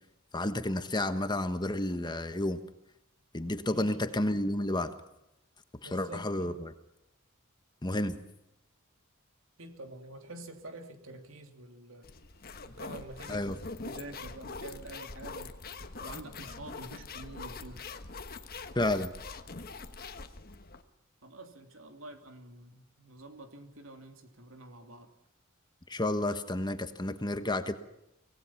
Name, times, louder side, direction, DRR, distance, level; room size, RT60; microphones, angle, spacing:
voice 1, 0.3-2.6 3.3-4.9 5.9-6.7 7.8-8.2 13.3-13.6 18.7-19.1 25.9-27.7, left 1 dB, 20° left, 9 dB, 1.3 m, -31 dB
voice 2, 3.7-4.1 5.8-6.6 9.6-12.1 12.7-13.5 13.8-15.5 16.0-17.8 21.2-25.1, right 2 dB, 70° right, 6 dB, 2.9 m, -47 dB
sound 1, 12.0-20.8, left 4 dB, 45° left, 1.4 m, -43 dB
25.5 x 18.5 x 5.9 m, 0.86 s
head